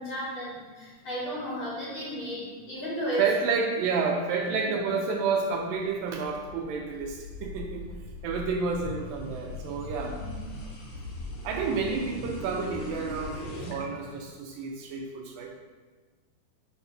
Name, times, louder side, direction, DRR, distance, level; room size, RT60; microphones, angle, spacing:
voice 1, 0.0-3.3 4.5-4.6 10.0-10.5, equal, 55° left, -8 dB, 1.8 m, -34 dB
voice 2, 3.2-7.9 8.2-10.1 11.4-15.5, right 4 dB, 85° right, 0 dB, 2.0 m, -30 dB
sound 1, 5.8-13.8, left 1 dB, 75° left, 1.2 m, -40 dB
5.7 x 4.7 x 5.5 m, 1.4 s
omnidirectional pair, 4.7 m